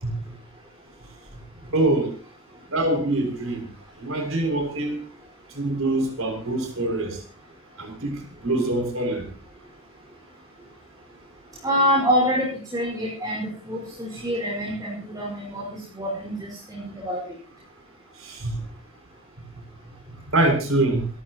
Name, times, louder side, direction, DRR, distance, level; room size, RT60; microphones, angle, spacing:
voice 1, 1.7-2.1 2.7-3.7 4.0-5.0 5.5-7.2 7.8-9.3 18.2-18.6 20.3-21.0, right 2 dB, 75° right, 4 dB, 6.5 m, -24 dB
voice 2, 11.6-12.5 12.7-17.2, equal, 20° right, -4 dB, 5.3 m, -26 dB
27.5 x 14.0 x 3.0 m, 0.39 s
head